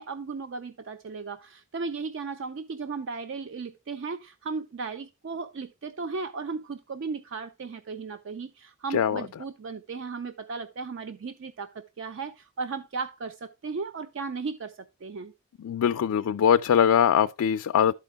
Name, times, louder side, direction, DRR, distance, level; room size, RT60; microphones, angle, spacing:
voice 1, 0.0-15.3, right 4 dB, 55° right, 0.4 m, -36 dB
voice 2, 15.6-17.9, left 8 dB, 90° left, 0.3 m, -22 dB
11.5 x 4.5 x 3.4 m
head